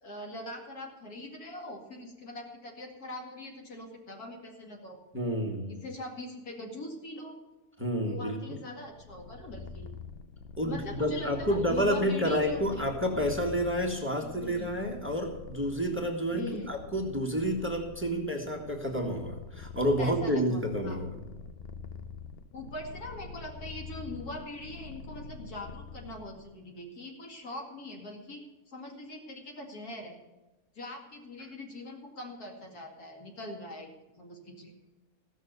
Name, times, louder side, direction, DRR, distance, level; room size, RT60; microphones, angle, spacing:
voice 1, 0.0-5.0 5.8-7.4 8.0-9.9 10.6-12.9 14.2-15.0 16.3-16.8 20.0-21.0 22.5-28.4 28.7-30.2 30.7-34.7, left 1 dB, 75° left, 1 dB, 2.8 m, -42 dB
voice 2, 5.1-5.8 7.8-8.6 10.6-21.1, equal, 10° right, 1 dB, 1.7 m, -30 dB
Purr, 8.9-26.6, left 5 dB, 50° left, 0.7 m, -45 dB
15.5 x 6.4 x 8.1 m, 1.1 s
omnidirectional pair, 1.6 m